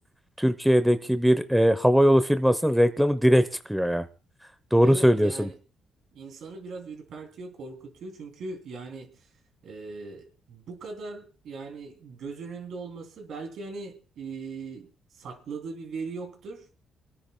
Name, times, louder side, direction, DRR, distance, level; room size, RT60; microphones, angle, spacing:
voice 1, 0.4-3.4 3.7-4.0 4.7-5.5, equal, ahead, 10 dB, 0.9 m, -20 dB
voice 2, 4.8-5.5 6.1-9.1 9.6-14.9 15.1-16.8, right 4 dB, 70° right, 4 dB, 3.2 m, -39 dB
28.0 x 10.0 x 2.3 m, 0.36 s
cardioid pair, 90°, 0 cm